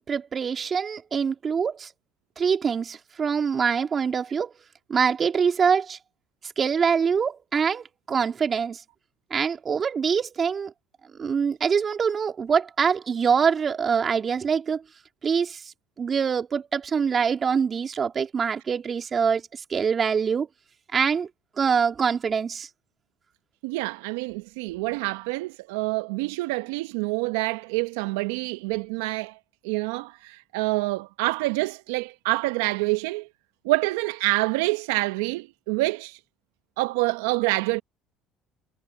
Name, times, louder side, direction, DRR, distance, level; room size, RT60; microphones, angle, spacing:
voice 1, 0.1-1.9 2.4-4.5 4.9-6.0 6.6-8.8 9.3-10.7 11.2-14.8 15.2-15.7 16.0-19.4 19.7-20.5 20.9-21.3 21.6-22.7, right 6 dB, 40° right, 2.5 m, -24 dB
voice 2, 23.6-29.4 29.6-33.3 33.6-36.2 36.8-37.8, right 22 dB, 80° right, 0.8 m, -27 dB
hypercardioid pair, 65°, 0 cm